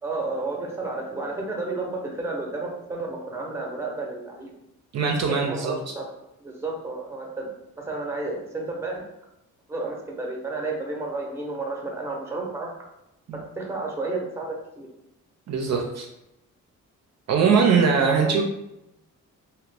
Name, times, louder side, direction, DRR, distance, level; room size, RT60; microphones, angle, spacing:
voice 1, 0.0-4.5 5.3-6.1 6.4-7.5 7.8-9.0 9.7-12.7 13.3-14.9 18.0-18.4, right 3 dB, 10° right, -1 dB, 0.7 m, -31 dB
voice 2, 4.9-5.7 13.3-13.4 15.5-16.1 17.3-18.4, right 5 dB, 55° right, 2 dB, 0.5 m, -21 dB
2.8 x 2.5 x 3.2 m, 0.87 s
cardioid pair, 120°, 32 cm